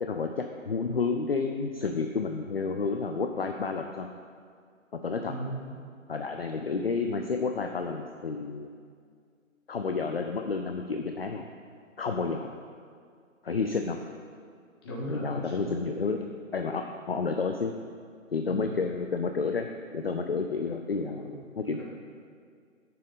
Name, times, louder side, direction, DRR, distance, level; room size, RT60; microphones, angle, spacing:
voice 1, 0.0-4.1 5.0-5.3 6.1-8.7 9.7-11.5 12.0-12.6 13.4-14.0 15.1-17.7 18.3-21.8, left 4 dB, 50° left, 4 dB, 0.5 m, -30 dB
voice 2, 5.3-5.7 14.8-15.7 18.5-18.6 21.2-21.8, equal, 20° left, -5 dB, 1.3 m, -37 dB
12.0 x 6.7 x 3.6 m, 2.1 s
figure-of-eight pair, 160°, 40 cm